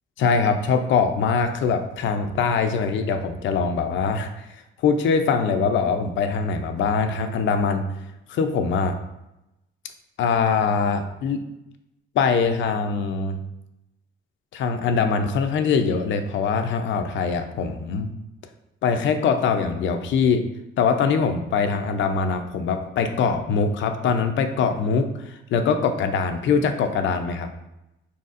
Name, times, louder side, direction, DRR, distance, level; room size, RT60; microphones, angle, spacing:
voice 1, 0.2-4.5 4.8-7.9 8.3-9.0 10.2-11.4 12.1-13.4 14.5-18.1 18.8-20.4 20.8-27.5, left 5 dB, 70° left, 7 dB, 0.5 m, -22 dB
4.5 x 4.2 x 2.5 m, 0.91 s
cardioid pair, 90°, 20 cm